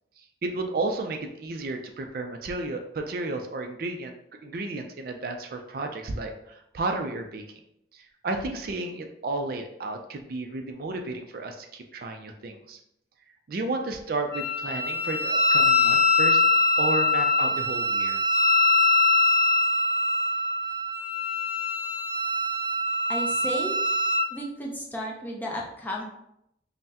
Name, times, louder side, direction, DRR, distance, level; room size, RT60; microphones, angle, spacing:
voice 1, 0.2-4.1 4.4-7.4 7.9-12.8 13.5-16.4 16.8-18.2, right 2 dB, 55° right, 4 dB, 0.4 m, -32 dB
Wind instrument woodwind instrument, 14.3-24.3, left 2 dB, 60° left, 0.7 m, -23 dB
voice 2, 23.1-23.8 24.3-26.0, equal, 10° left, -2 dB, 0.5 m, -33 dB
5.4 x 2.1 x 2.8 m, 0.78 s
head